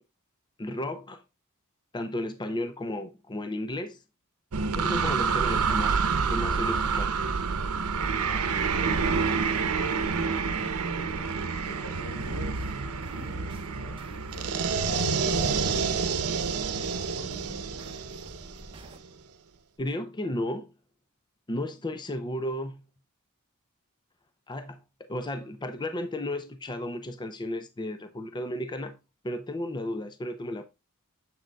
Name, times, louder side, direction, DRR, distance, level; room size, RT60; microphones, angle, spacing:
voice 1, 0.6-1.2 1.9-4.0 4.7-7.2 19.8-20.7 21.5-22.8 24.5-29.0 29.2-30.6, left 1 dB, 20° left, 0.5 m, -34 dB
sound 1, 4.5-19.1, right 5 dB, 90° right, 0.8 m, -28 dB
voice 2, 8.7-11.3 11.6-12.5 13.1-18.0, equal, 90° left, 3.7 m, -45 dB
sound 2, 12.2-19.0, right 1 dB, 25° right, 1.0 m, -48 dB
7.5 x 6.4 x 2.2 m
head